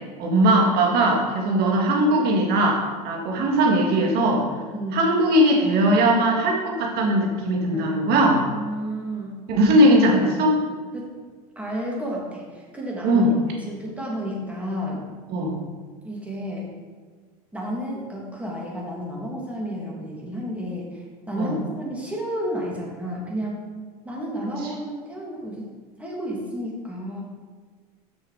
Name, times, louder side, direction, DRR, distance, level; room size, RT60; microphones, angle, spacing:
voice 1, 0.2-4.5 4.9-8.4 9.5-10.6 13.0-13.4 15.3-15.6 21.4-21.6, right 1 dB, 55° right, 0 dB, 2.1 m, -19 dB
voice 2, 7.7-9.4 10.9-11.1 11.6-15.0 16.0-16.7 17.5-23.6 24.0-25.7 26.0-27.2, equal, 5° right, -4 dB, 2.6 m, -31 dB
7.0 x 6.4 x 5.0 m, 1.5 s
hypercardioid pair, 95°, 20 cm